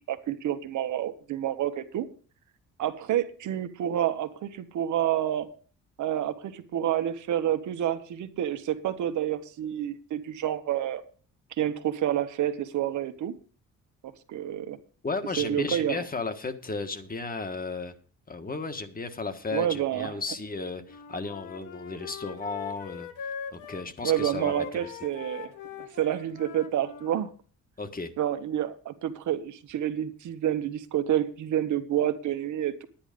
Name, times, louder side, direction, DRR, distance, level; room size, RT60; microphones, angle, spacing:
voice 1, 0.0-2.1 2.8-5.5 6.0-11.0 11.6-13.3 14.3-14.8 15.4-16.0 19.5-20.1 24.0-25.5 26.0-27.3 28.2-32.9, right 11 dB, 75° right, 9 dB, 1.4 m, -28 dB
voice 2, 15.0-17.9 18.3-23.1 23.5-24.9 27.8-28.1, left 3 dB, 30° left, 8 dB, 1.6 m, -34 dB
Wind instrument woodwind instrument, 20.8-27.2, left 8 dB, 85° left, 1.5 m, -42 dB
10.5 x 10.0 x 5.2 m, 0.40 s
cardioid pair, 90°, 30 cm